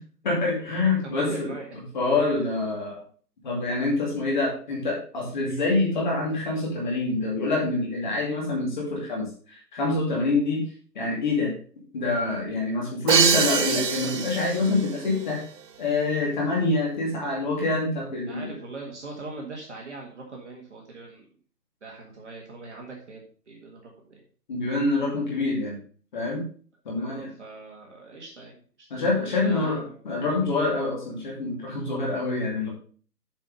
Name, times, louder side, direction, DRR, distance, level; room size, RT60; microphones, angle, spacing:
voice 1, 0.2-1.5 1.9-3.0 3.4-10.6 10.9-11.5 11.9-15.4 15.8-18.6 24.5-25.8 26.1-26.4 26.8-27.3 28.9-32.7, left 3 dB, 30° left, -3 dB, 2.4 m, -26 dB
voice 2, 1.0-1.7 5.5-5.6 18.3-21.3 21.8-24.2 27.0-28.9 29.3-30.0, right 3 dB, 45° right, -1 dB, 1.8 m, -41 dB
Crash cymbal, 13.1-14.9, right 6 dB, 80° right, 0.9 m, -23 dB
7.5 x 5.3 x 5.3 m, 0.43 s
figure-of-eight pair, 160°, 48 cm